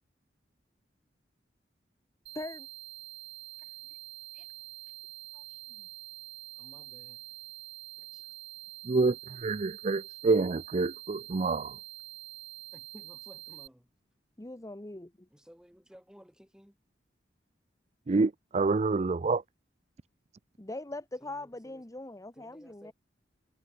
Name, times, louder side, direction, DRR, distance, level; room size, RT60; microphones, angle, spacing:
voice 1, 2.3-2.7 14.4-15.3 20.6-22.9, left 2 dB, 20° left, 1.0 m, -41 dB
sound 1, 2.3-13.7, right 15 dB, 70° right, 5.8 m, -46 dB
voice 2, 5.3-5.9 6.6-7.2 8.0-8.3 12.7-13.9 15.3-16.7 21.2-21.8 22.4-22.9, equal, 5° right, 3.7 m, -57 dB
voice 3, 8.8-11.8 18.1-19.4, right 3 dB, 35° right, 0.4 m, -27 dB
head